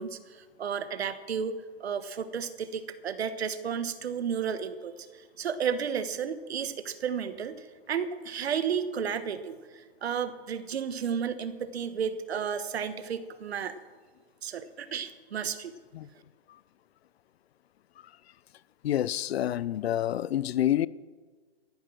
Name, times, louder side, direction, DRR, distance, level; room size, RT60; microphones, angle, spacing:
voice 1, 0.0-4.9 5.4-13.7 14.4-15.7, right 7 dB, 80° right, 1.3 m, -33 dB
voice 2, 18.8-20.9, left 12 dB, 75° left, 0.5 m, -27 dB
14.0 x 10.5 x 6.2 m
hypercardioid pair, 160°, 32 cm